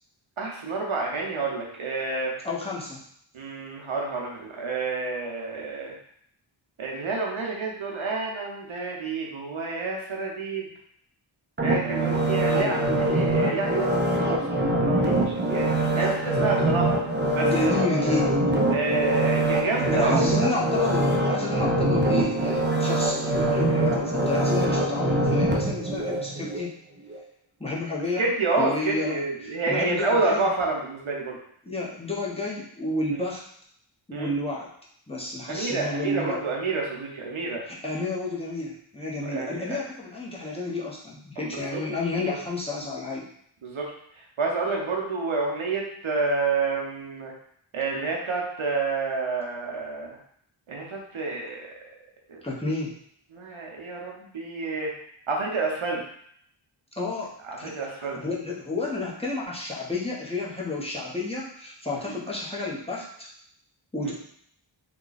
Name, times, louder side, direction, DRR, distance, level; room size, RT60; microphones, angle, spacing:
voice 1, 0.4-2.3 3.3-5.9 6.8-10.7 11.6-17.0 17.3-18.2 18.7-20.3 28.2-31.4 34.1-34.3 35.5-37.6 39.2-39.8 41.4-41.8 43.6-43.9 44.4-47.3 47.7-50.2 50.7-51.7 52.3-52.4 53.3-54.9 55.3-56.0 57.4-58.2 62.1-62.2 64.0-64.1, right 3 dB, 85° right, -1 dB, 0.9 m, -29 dB
voice 2, 2.4-3.0 12.5-12.8 17.4-18.3 19.9-26.7 27.6-28.3 28.6-30.5 31.6-33.4 34.1-34.7 35.1-36.4 37.7-43.3 52.4-52.9 57.0-63.3 63.9-64.1, left 2 dB, 15° left, -6 dB, 0.9 m, -31 dB
sound 1, 11.6-26.6 27.1-27.2, right 1 dB, 25° right, 0.5 m, -24 dB
3.2 x 2.3 x 3.9 m, 0.66 s
wide cardioid pair, 55°, 47 cm